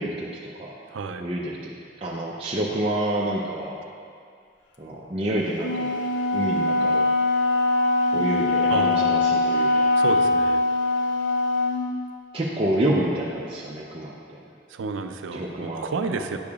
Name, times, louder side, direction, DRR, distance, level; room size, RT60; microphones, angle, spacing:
voice 1, 0.0-0.7 1.2-1.7 2.0-3.7 4.8-5.9 6.3-7.1 8.1-9.9 12.3-14.1 15.3-16.2, right 1 dB, 30° right, -5 dB, 0.5 m, -28 dB
voice 2, 0.9-1.2 8.7-9.3 10.0-10.6 14.7-16.4, right 4 dB, 85° right, 7 dB, 0.4 m, -30 dB
Wind instrument woodwind instrument, 5.6-11.9, left 2 dB, 75° left, 0.5 m, -22 dB
9.4 x 6.7 x 2.3 m, 2.3 s
head